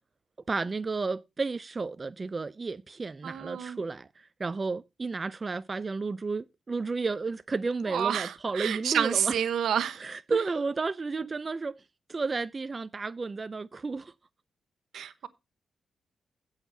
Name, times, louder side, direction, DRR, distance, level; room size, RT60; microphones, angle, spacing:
voice 1, 0.5-9.4 10.0-11.8 12.1-14.1 14.9-15.1, right 4 dB, 35° right, 0.4 m, -32 dB
voice 2, 3.2-3.8 7.9-10.1 11.1-11.3 14.9-15.3, right 9 dB, 80° right, 0.9 m, -29 dB
16.0 x 6.5 x 2.7 m
cardioid pair, 75°, 0 cm